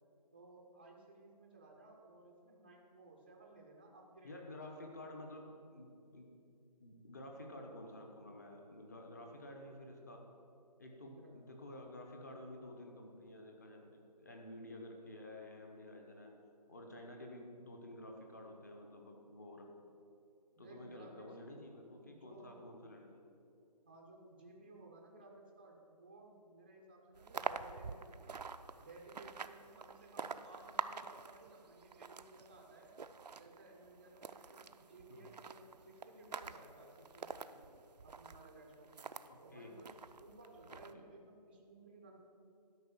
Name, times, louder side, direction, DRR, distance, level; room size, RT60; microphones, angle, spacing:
voice 1, 0.3-4.8 11.0-11.3 20.5-21.4 22.0-22.9 23.9-28.4 28.8-32.9 33.3-37.6 38.0-39.1 39.4-42.2, right 2 dB, 15° right, 0 dB, 0.6 m, -58 dB
voice 2, 4.2-6.3 6.8-10.3 10.8-16.3 16.7-19.7 20.6-23.2 35.1-35.3 39.3-39.7 40.7-41.1, left 1 dB, 25° left, 2 dB, 0.9 m, -51 dB
sound 1, 27.1-39.3 39.8-40.9, right 5 dB, 75° right, 0.6 m, -47 dB
12.5 x 5.3 x 7.1 m, 2.5 s
figure-of-eight pair, 170°, 21 cm